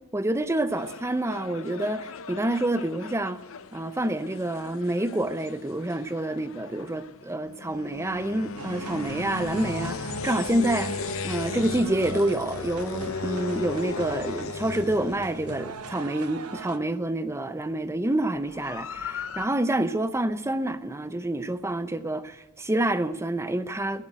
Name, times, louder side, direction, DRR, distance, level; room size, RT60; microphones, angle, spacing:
voice 1, 0.1-3.4 3.7-24.1, right 1 dB, 10° right, 0.7 m, -28 dB
sound 1, 0.7-16.3 18.4-19.5, left 5 dB, 65° left, 0.7 m, -37 dB
sound 2, 8.6-16.8, right 4 dB, 90° right, 1.1 m, -41 dB
15.5 x 7.4 x 9.0 m
head